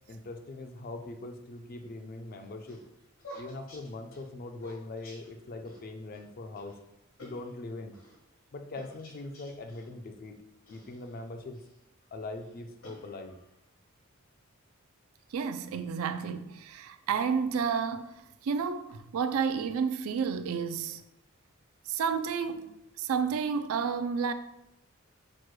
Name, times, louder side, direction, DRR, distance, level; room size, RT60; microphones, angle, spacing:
voice 1, 0.1-2.8 3.4-6.7 7.2-8.0 8.5-10.3 10.7-11.6 12.1-13.4, left 2 dB, 45° left, 0.4 m, -41 dB
sound 1, 2.3-5.8 6.1-6.2 6.6-6.8 7.2-8.2 8.7-9.9 10.7-11.8 12.4-13.6, equal, 75° left, 1.2 m, -51 dB
voice 2, 15.3-18.1 18.4-21.0 21.9-24.3, right 6 dB, 80° right, 0.3 m, -31 dB
6.0 x 2.2 x 3.1 m
head